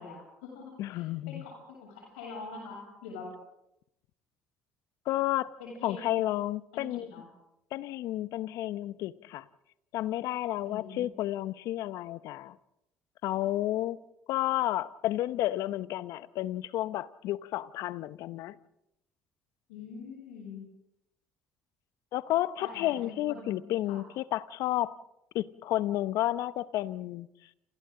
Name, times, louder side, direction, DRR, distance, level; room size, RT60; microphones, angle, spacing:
voice 1, 0.0-3.4 5.6-6.2 6.7-7.3 10.6-11.1 19.7-20.6 22.6-24.0, left 4 dB, 85° left, -1 dB, 7.2 m, -44 dB
voice 2, 0.8-1.4 5.1-5.5 5.8-7.1 7.7-9.5 9.9-12.6 13.2-14.0 14.3-18.6 22.1-24.9 25.3-27.3, left 14 dB, 70° left, 16 dB, 0.8 m, -31 dB
28.5 x 28.5 x 3.8 m, 0.83 s
hypercardioid pair, 65°, 6 cm